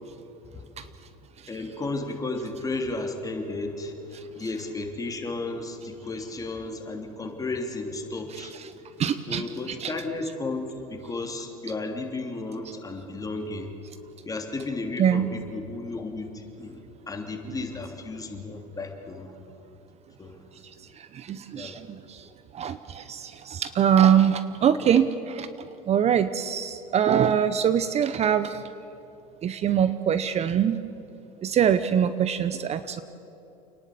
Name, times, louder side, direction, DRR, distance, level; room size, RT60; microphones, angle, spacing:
voice 1, 1.5-8.5 9.3-13.7 14.2-16.8 17.1-19.3 20.2-20.4 21.5-21.8, left 2 dB, 20° left, 3 dB, 3.1 m, -33 dB
voice 2, 9.0-9.9 15.0-15.3 17.5-17.6 21.0-22.3 22.5-25.5 25.9-28.6 29.4-30.8 31.4-33.0, right 8 dB, 35° right, 13 dB, 0.8 m, -23 dB
29.0 x 10.5 x 8.4 m, 3.0 s
hypercardioid pair, 95°, 18 cm